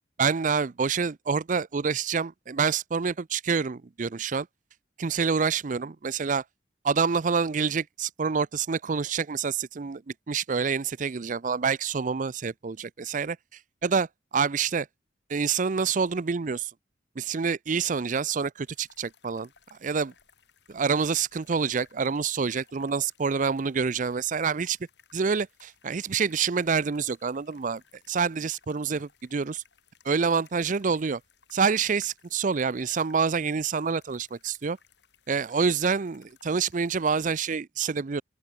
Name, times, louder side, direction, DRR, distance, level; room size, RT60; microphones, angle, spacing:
voice 1, 0.2-4.5 5.0-6.4 6.8-10.0 10.3-13.4 13.8-14.1 14.3-14.9 15.3-16.7 17.2-20.1 20.7-24.8 25.1-27.8 28.1-29.6 30.0-31.2 31.5-34.8 35.3-38.2, right 5 dB, 45° right, 0.5 m, -27 dB
sound 1, 18.7-37.4, left 6 dB, 70° left, 7.1 m, -61 dB
open air
head